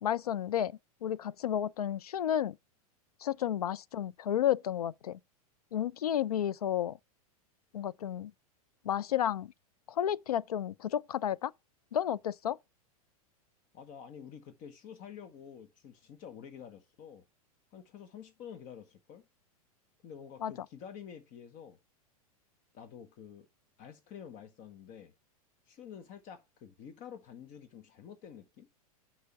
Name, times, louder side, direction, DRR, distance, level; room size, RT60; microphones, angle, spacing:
voice 1, 0.0-2.6 3.2-5.2 5.7-7.0 7.7-8.3 8.8-9.5 9.9-11.5 11.9-12.6 20.4-20.5, left 10 dB, 85° left, 0.4 m, -32 dB
voice 2, 13.7-17.2 17.7-19.2 20.0-21.8 22.7-23.5 23.8-25.1 25.7-28.7, left 8 dB, 45° left, 1.5 m, -49 dB
6.8 x 6.2 x 4.6 m
hypercardioid pair, 100°, 19 cm